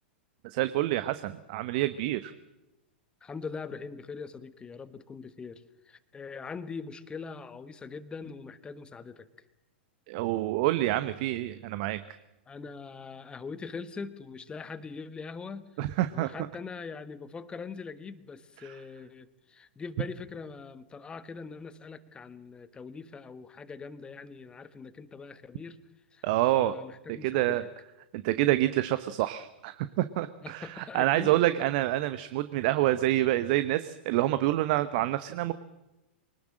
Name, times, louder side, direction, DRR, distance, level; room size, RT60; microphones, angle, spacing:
voice 1, 0.4-2.3 10.1-12.2 15.8-16.3 18.6-18.7 26.2-26.8 27.2-27.6 28.1-35.5, right 15 dB, 50° right, 12 dB, 1.0 m, -27 dB
voice 2, 3.2-9.3 12.5-15.7 16.1-25.8 26.1-26.2 26.5-27.7 30.4-31.4, left 5 dB, 15° left, 13 dB, 1.4 m, -42 dB
24.0 x 19.0 x 7.6 m, 0.98 s
figure-of-eight pair, 100°, 6 cm